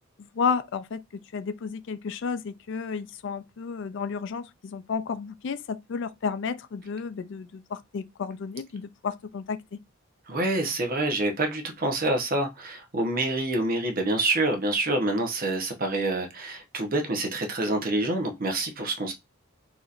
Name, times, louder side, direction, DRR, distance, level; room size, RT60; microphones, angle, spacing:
voice 1, 0.2-9.8, left 5 dB, 60° left, 0.4 m, -32 dB
voice 2, 10.3-19.1, right 2 dB, 45° right, 0.9 m, -27 dB
4.0 x 3.0 x 2.4 m
head